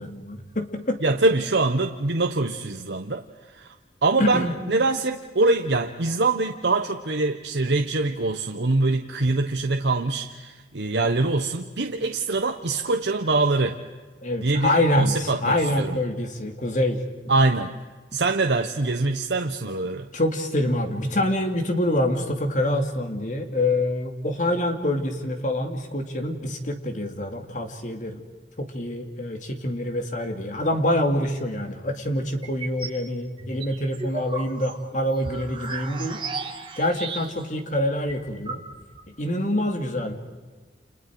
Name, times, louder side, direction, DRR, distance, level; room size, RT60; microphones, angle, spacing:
voice 1, 0.0-1.0 4.2-4.5 14.2-17.3 20.1-28.2 28.6-36.2 36.8-38.6 39.1-40.1, left 1 dB, 45° left, 5 dB, 2.4 m, -26 dB
voice 2, 1.0-3.2 3.5-3.7 4.0-13.8 14.4-16.0 17.3-17.8 18.1-20.1, right 3 dB, 80° right, 5 dB, 1.1 m, -24 dB
sound 1, 32.4-33.0 33.4-37.6 37.8-37.9 38.1-39.1, right 4 dB, 30° right, 2.0 m, -35 dB
30.0 x 28.5 x 4.8 m, 1.3 s
head